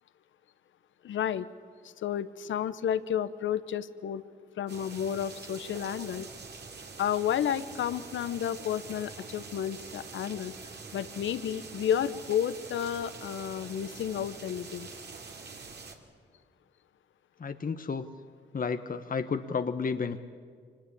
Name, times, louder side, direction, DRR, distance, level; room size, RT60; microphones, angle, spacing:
voice 1, 1.0-1.5 1.8-4.2 4.6-6.3 7.0-10.5 10.9-14.9, left 9 dB, 80° left, 15 dB, 1.0 m, -31 dB
sound 1, 4.7-16.0, right 4 dB, 60° right, 2.9 m, -45 dB
voice 2, 17.4-18.1 18.5-20.2, left 5 dB, 45° left, 9 dB, 1.1 m, -31 dB
24.5 x 20.5 x 8.6 m, 2.1 s
cardioid pair, 55°, 19 cm